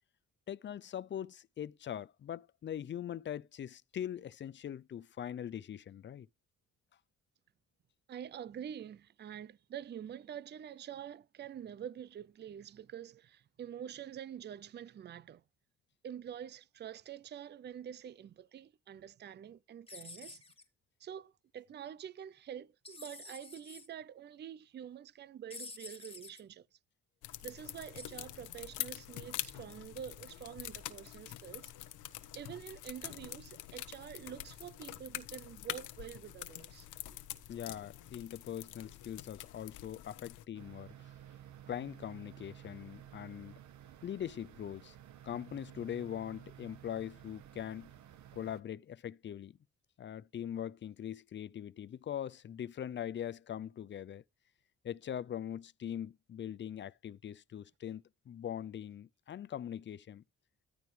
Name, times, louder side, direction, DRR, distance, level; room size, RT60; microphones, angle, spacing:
voice 1, 0.5-6.3 37.5-41.1 41.7-43.5 44.0-45.0 45.2-47.9 48.3-49.6 50.0-54.2 54.8-60.2, left 10 dB, 40° left, 0.5 m, -42 dB
voice 2, 8.1-15.4 16.0-20.4 21.0-26.7 27.4-31.7 32.3-36.9, right 9 dB, 35° right, 0.5 m, -47 dB
sound 1, 19.9-20.6 22.9-23.9 25.5-26.4 28.0-28.2, left 3 dB, 20° left, 1.8 m, -49 dB
sound 2, 27.2-40.5, left 14 dB, 90° left, 1.0 m, -45 dB
sound 3, 40.5-48.6, right 11 dB, 70° right, 1.2 m, -54 dB
14.0 x 4.9 x 3.3 m
cardioid pair, 90°, 30 cm